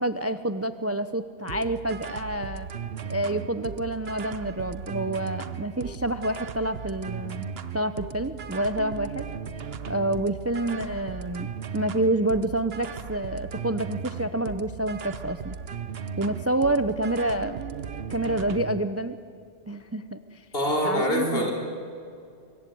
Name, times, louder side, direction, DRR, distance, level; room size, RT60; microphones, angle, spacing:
voice 1, 0.0-2.7 3.1-7.5 7.7-9.3 9.9-11.5 11.7-15.6 16.2-17.6 18.1-19.2 19.7-20.4 20.8-21.5, right 1 dB, 15° right, 11 dB, 0.7 m, -28 dB
sound 1, 1.5-18.8, right 6 dB, 60° right, 1.1 m, -37 dB
voice 2, 20.5-21.5, equal, 55° left, 0 dB, 4.9 m, -24 dB
25.5 x 23.0 x 9.3 m, 2.4 s
omnidirectional pair, 1.2 m